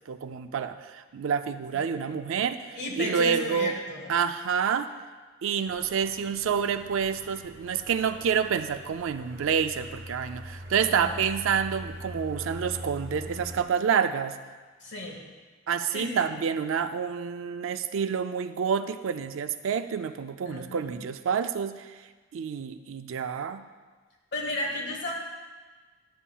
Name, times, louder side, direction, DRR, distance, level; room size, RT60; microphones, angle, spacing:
voice 1, 0.1-3.7 4.1-4.9 5.4-14.4 15.7-21.9 22.3-23.6, right 7 dB, 80° right, 10 dB, 0.4 m, -28 dB
voice 2, 1.7-2.2 2.7-4.2 10.8-11.3 14.8-15.2 15.9-16.3 20.4-21.0 24.3-25.1, left 2 dB, 60° left, -2 dB, 1.6 m, -34 dB
sound 1, 5.6-13.6, equal, 65° right, 1.3 m, -43 dB
11.0 x 7.2 x 2.3 m, 1.4 s
head